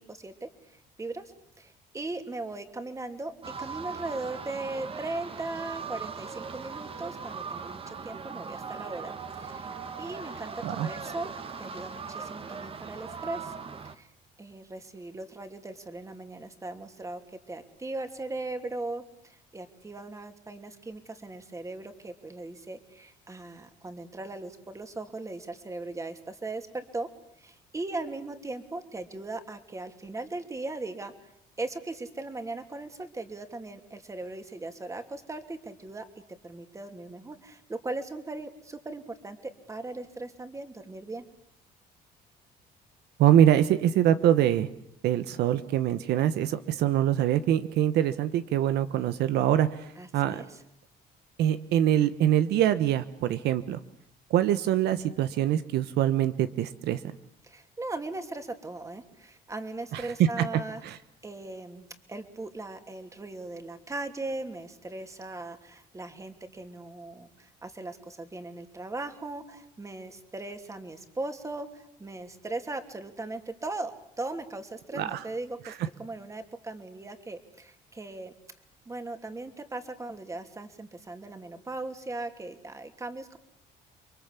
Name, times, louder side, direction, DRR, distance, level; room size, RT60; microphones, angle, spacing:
voice 1, 0.0-3.3 3.6-9.7 10.0-13.5 13.8-14.1 14.4-27.1 27.4-31.1 31.6-36.1 36.4-41.2 50.0-50.6 57.4-60.8 61.2-78.3 78.9-83.4, right 2 dB, 20° right, 7 dB, 3.0 m, -38 dB
sound 1, 3.4-14.0, right 5 dB, 35° right, 1.8 m, -39 dB
voice 2, 43.2-44.7 45.0-49.8 50.1-50.4 51.4-53.8 54.3-57.0 59.9-60.4 60.8-61.0 74.9-75.2, right 11 dB, 75° right, 12 dB, 1.2 m, -24 dB
30.0 x 23.0 x 8.5 m, 0.74 s
cardioid pair, 110°, 17 cm